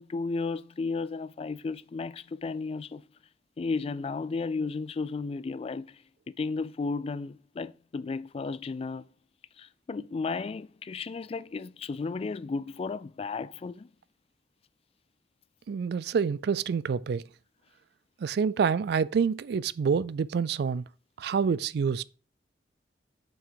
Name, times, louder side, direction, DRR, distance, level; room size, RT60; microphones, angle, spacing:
voice 1, 0.0-3.0 3.6-6.0 6.3-9.1 9.6-13.9, left 4 dB, 35° left, 0.3 m, -34 dB
voice 2, 15.7-17.2 18.2-20.8 21.2-22.0, right 6 dB, 65° right, 0.3 m, -27 dB
5.7 x 5.2 x 4.8 m
head